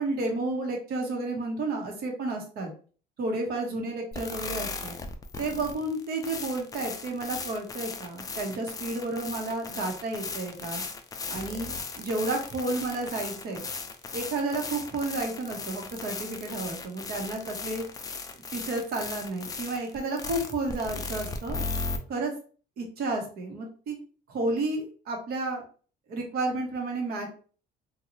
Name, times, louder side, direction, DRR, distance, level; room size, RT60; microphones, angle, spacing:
voice 1, 0.0-2.7 3.2-5.0 5.4-10.8 11.3-13.6 14.1-17.8 18.5-21.6 22.1-22.3 22.8-24.0 24.3-25.6 26.1-27.3, right 2 dB, 65° right, 2 dB, 1.0 m, -31 dB
sound 1, 4.1-22.0, left 4 dB, 20° left, 0.4 m, -37 dB
2.7 x 2.3 x 2.9 m, 0.40 s
cardioid pair, 110°, 17 cm